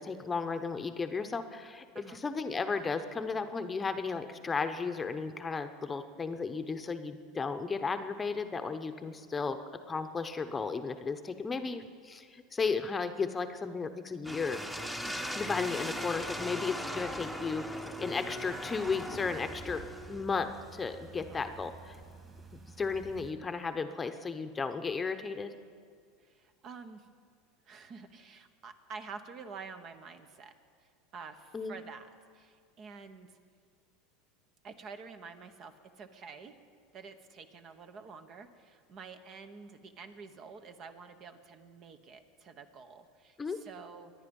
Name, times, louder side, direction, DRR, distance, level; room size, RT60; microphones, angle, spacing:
voice 1, 0.0-9.6 9.9-14.6 15.3-22.0 22.8-25.5 31.5-31.8 43.4-43.6, left 4 dB, 20° left, 8 dB, 0.9 m, -34 dB
sound 1, 14.2-20.3, equal, 5° right, 1.1 m, -39 dB
voice 2, 15.0-15.4 21.2-21.4 26.2-27.1 27.6-30.5 30.8-32.1 32.3-33.3 34.6-36.6 36.9-44.1, right 5 dB, 45° right, 8 dB, 1.2 m, -48 dB
sound 2, 17.9-23.3, right 3 dB, 25° right, 2.9 m, -51 dB
23.5 x 10.0 x 5.4 m, 2.1 s
supercardioid pair, 105°, 0 cm